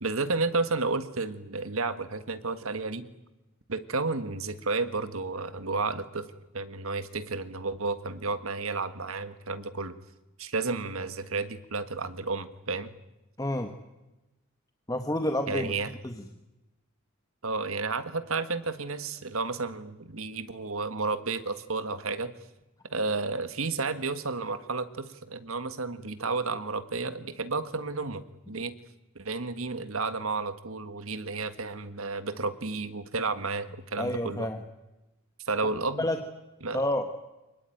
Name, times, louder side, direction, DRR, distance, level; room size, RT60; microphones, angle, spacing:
voice 1, 0.0-3.1 3.7-6.3 6.5-9.9 10.4-12.9 15.5-15.9 17.4-22.3 22.8-28.7 29.2-34.5 35.5-36.0 36.6-36.8, right 3 dB, 80° right, 11 dB, 1.7 m, -32 dB
voice 2, 13.4-13.7 14.9-15.7 16.0-16.2 34.0-34.6 36.0-36.2 36.7-37.1, left 1 dB, 15° left, 5 dB, 1.4 m, -29 dB
24.0 x 21.0 x 9.2 m, 1.0 s
head